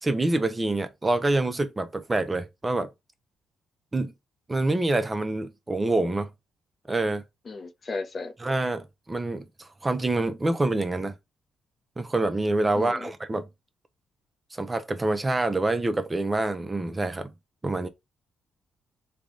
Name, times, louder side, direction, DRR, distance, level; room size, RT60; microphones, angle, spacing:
voice 1, 0.0-2.9 3.9-4.1 4.5-6.3 6.9-7.2 8.4-11.1 12.0-13.5 14.5-17.3 17.6-17.9, right 2 dB, 20° right, 0.6 m, -26 dB
voice 2, 7.4-8.3 12.7-13.1, left 3 dB, 40° left, 0.7 m, -34 dB
3.4 x 2.3 x 3.7 m
cardioid pair, 90°, 0 cm